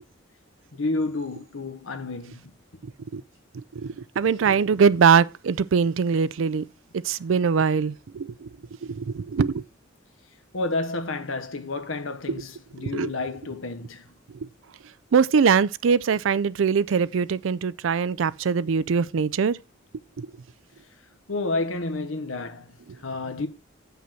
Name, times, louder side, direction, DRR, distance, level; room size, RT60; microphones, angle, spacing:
voice 1, 0.7-2.5 10.5-14.1 21.3-23.5, left 2 dB, 80° left, 1.1 m, -30 dB
voice 2, 3.7-6.6 6.9-8.5 8.8-9.6 12.8-13.1 14.4-14.5 15.1-19.6 20.2-20.3, right 6 dB, 75° right, 0.4 m, -22 dB
7.5 x 5.7 x 5.6 m
head